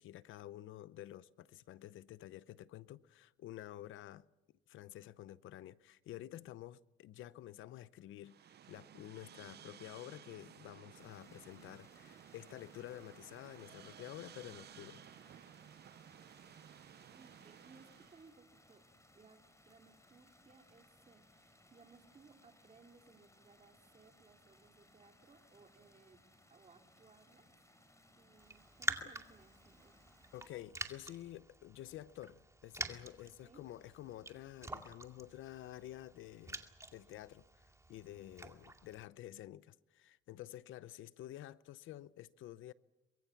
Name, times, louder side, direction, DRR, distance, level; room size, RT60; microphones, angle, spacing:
voice 1, 0.0-4.2 4.7-15.0 29.0-29.1 30.3-36.7 36.9-42.7, left 13 dB, 80° left, 0.8 m, -50 dB
sound 1, 8.2-18.3, right 10 dB, 55° right, 0.8 m, -57 dB
sound 2, 10.9-30.5, left 1 dB, 15° left, 5.4 m, -66 dB
voice 2, 17.0-18.8 19.1-26.2 26.5-27.5 28.1-30.0 33.3-33.7, right 4 dB, 35° right, 2.9 m, -63 dB
Raindrop, 28.4-39.1, right 2 dB, 15° right, 2.2 m, -47 dB
24.0 x 22.0 x 7.2 m
cardioid pair, 90°, 20 cm